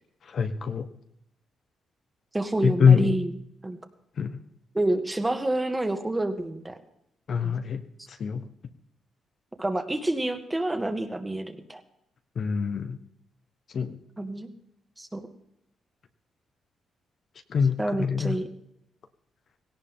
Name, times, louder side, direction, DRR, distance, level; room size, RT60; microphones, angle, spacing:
voice 1, 0.2-0.9 2.6-3.2 4.2-4.4 7.3-8.5 12.3-13.0 13.7-14.0 17.5-18.4, left 6 dB, 55° left, 7 dB, 1.3 m, -24 dB
voice 2, 2.3-3.3 3.6-3.8 4.7-6.8 7.4-7.5 9.6-11.8 14.2-14.5 15.0-15.3 17.8-18.5, right 1 dB, 15° right, 6 dB, 2.0 m, -28 dB
17.5 x 17.5 x 3.8 m, 0.75 s
cardioid pair, 105°, 0 cm